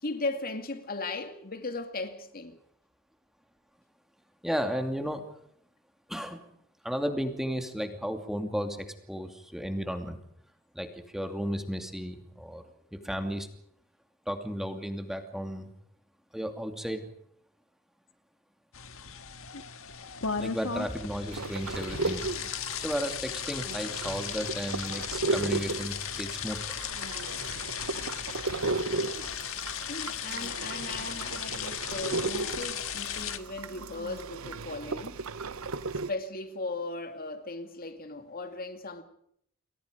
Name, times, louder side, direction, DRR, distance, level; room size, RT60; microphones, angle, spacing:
voice 1, 0.0-2.6 29.9-35.2 36.1-39.0, left 2 dB, 45° left, 2.3 m, -37 dB
voice 2, 4.4-5.2 6.1-6.4 6.8-10.2 10.7-12.6 12.9-13.5 14.3-15.7 16.3-17.1 20.4-22.3 22.8-26.6, equal, ahead, 2.6 m, -34 dB
sound 1, 18.7-33.4, left 8 dB, 70° left, 1.7 m, -36 dB
sound 2, 21.3-36.1, right 3 dB, 75° right, 1.0 m, -35 dB
30.0 x 23.5 x 5.2 m
head